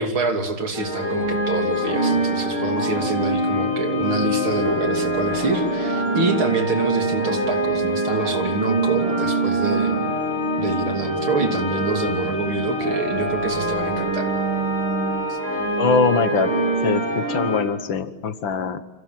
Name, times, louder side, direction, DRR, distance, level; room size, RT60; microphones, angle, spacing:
voice 1, 0.0-10.0 10.6-14.3 15.3-15.4, right 3 dB, 75° right, 5 dB, 3.8 m, -26 dB
sound 1, 0.7-17.6, right 1 dB, 40° right, 7.9 m, -24 dB
voice 2, 15.8-16.5 16.8-18.8, left 5 dB, 65° left, 11 dB, 2.1 m, -22 dB
29.5 x 26.0 x 7.7 m, 0.99 s
omnidirectional pair, 2.3 m